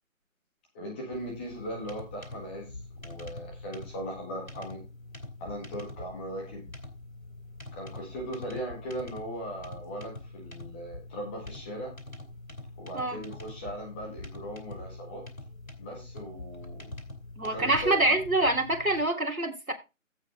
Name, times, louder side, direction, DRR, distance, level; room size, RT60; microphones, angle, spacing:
voice 1, 0.7-4.8 5.4-6.7 7.7-11.9 12.8-15.2 15.8-16.9 17.4-18.2, equal, 10° left, 0 dB, 1.6 m, -39 dB
sound 1, 1.1-19.0, left 2 dB, 80° left, 2.7 m, -44 dB
voice 2, 17.4-19.7, right 2 dB, 90° right, 3 dB, 3.1 m, -26 dB
15.5 x 5.4 x 3.3 m, 0.26 s
figure-of-eight pair, 155°, 41 cm